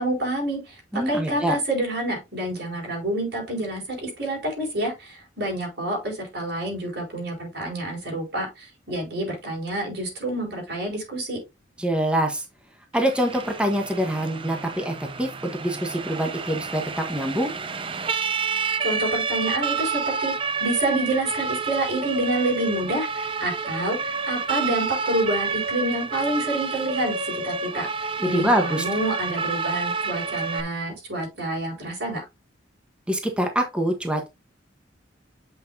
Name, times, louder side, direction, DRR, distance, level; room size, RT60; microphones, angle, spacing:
voice 1, 0.0-11.4 18.8-20.3 20.6-27.9 28.2-32.2, right 1 dB, 60° right, 0 dB, 5.1 m, -28 dB
voice 2, 0.9-1.6 11.8-12.4 12.9-17.5 28.2-28.8 33.1-34.3, right 1 dB, 5° right, 3 dB, 1.1 m, -25 dB
Siren, 12.9-30.6, right 5 dB, 30° right, 0.6 m, -29 dB
8.4 x 5.9 x 2.7 m, 0.23 s
head